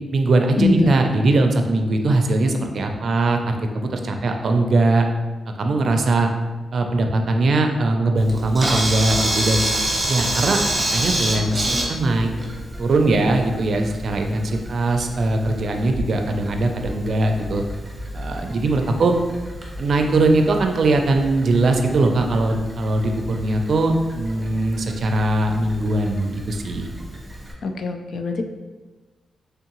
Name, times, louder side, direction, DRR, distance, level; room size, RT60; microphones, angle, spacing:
voice 1, 0.1-5.1 5.6-6.3 6.7-9.6 10.1-10.6 10.9-12.3 12.8-17.6 18.1-19.1 19.8-26.9, right 2 dB, 60° right, 4 dB, 0.4 m, -20 dB
Camera, 8.2-27.5, right 1 dB, 25° right, 0.8 m, -29 dB
voice 2, 27.6-28.4, left 3 dB, 65° left, 6 dB, 0.3 m, -22 dB
3.6 x 3.5 x 2.9 m, 1.3 s
cardioid pair, 100°, 0 cm